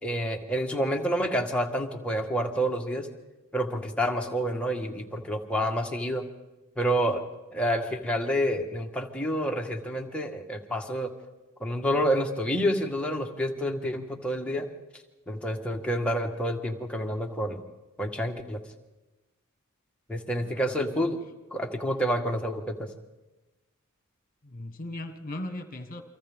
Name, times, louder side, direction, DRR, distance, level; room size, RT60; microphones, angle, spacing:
voice 1, 0.0-3.1 3.5-6.2 6.8-7.2 7.5-11.1 11.6-14.7 15.3-17.6 18.0-18.6 20.1-21.2 21.5-22.9, equal, 5° left, 1 dB, 1.5 m, -28 dB
voice 2, 24.4-26.0, left 1 dB, 40° left, 7 dB, 1.4 m, -38 dB
29.0 x 25.0 x 3.6 m, 1.1 s
head